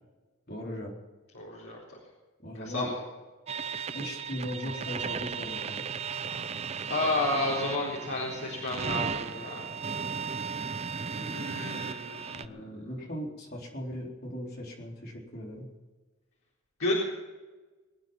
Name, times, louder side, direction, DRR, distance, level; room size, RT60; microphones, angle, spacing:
voice 1, 0.5-0.9 2.4-2.9 3.9-5.8 12.3-15.7, equal, 45° left, -2 dB, 4.1 m, -38 dB
voice 2, 1.3-1.8 2.5-3.0 6.2-6.4 6.9-9.7 11.0-12.7 16.8-17.0, left 2 dB, 85° left, -5 dB, 4.0 m, -32 dB
sound 1, 3.5-12.5, right 6 dB, 30° right, 0.4 m, -35 dB
23.5 x 9.5 x 5.8 m, 1.3 s
head